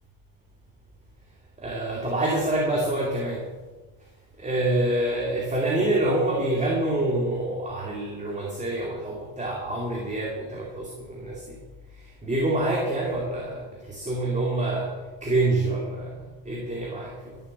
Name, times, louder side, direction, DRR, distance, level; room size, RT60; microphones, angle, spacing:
voice 1, 1.6-3.5 4.4-11.6 11.9-14.9 15.2-17.4, right 1 dB, 15° right, -2 dB, 2.6 m, -27 dB
14.0 x 7.4 x 7.6 m, 1.3 s
supercardioid pair, 110°, 45 cm